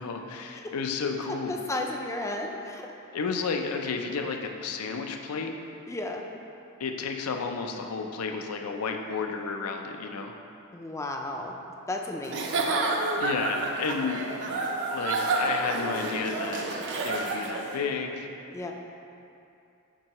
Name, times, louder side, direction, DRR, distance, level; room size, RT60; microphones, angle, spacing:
voice 1, 0.0-1.5 3.1-5.5 6.8-10.3 13.2-14.2 14.9-16.8 17.0-18.3, left 5 dB, 90° left, 4 dB, 0.5 m, -32 dB
voice 2, 1.5-2.9 5.9-6.3 10.7-11.5 11.9-12.7 18.5-18.7, left 2 dB, 15° left, 2 dB, 0.3 m, -33 dB
Giggle / Chuckle chortle, 12.2-17.7, right 3 dB, 55° right, 0.5 m, -29 dB
7.4 x 4.6 x 2.9 m, 2.6 s
head